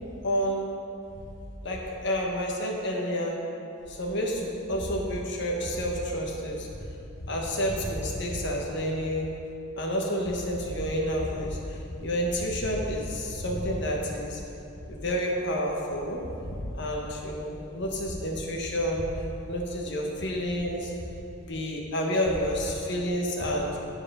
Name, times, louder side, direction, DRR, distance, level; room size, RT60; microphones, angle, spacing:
voice 1, 0.2-0.8 1.6-3.4 3.9-6.7 7.2-9.3 9.8-14.4 14.9-19.0 19.5-20.9 21.4-23.7, equal, 55° left, -1 dB, 1.2 m, -29 dB
10.0 x 4.9 x 5.4 m, 2.7 s
head